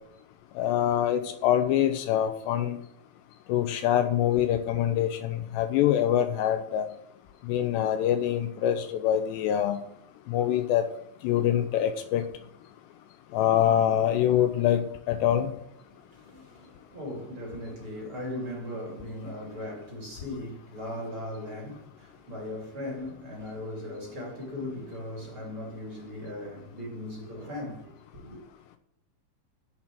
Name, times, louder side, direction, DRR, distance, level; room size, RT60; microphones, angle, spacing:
voice 1, 0.6-2.8 3.5-6.9 7.4-9.8 10.3-10.9 11.2-12.2 13.3-15.5, left 11 dB, 80° left, 2.8 m, -25 dB
voice 2, 15.9-28.4, left 1 dB, 35° right, 3.0 m, -38 dB
10.5 x 7.3 x 7.5 m
omnidirectional pair, 5.3 m